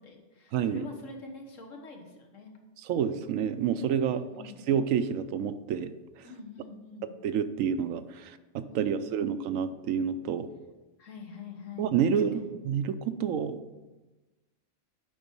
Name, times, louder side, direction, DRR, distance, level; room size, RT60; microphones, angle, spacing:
voice 1, 0.0-2.5 4.1-4.7 6.2-7.1 8.7-9.4 11.0-12.5, left 3 dB, 70° left, 3 dB, 1.5 m, -46 dB
voice 2, 0.5-0.8 2.8-4.3 4.7-5.9 7.2-10.5 11.8-13.6, right 8 dB, 80° right, 11 dB, 0.9 m, -28 dB
10.5 x 4.0 x 5.4 m, 1.2 s
omnidirectional pair, 1.4 m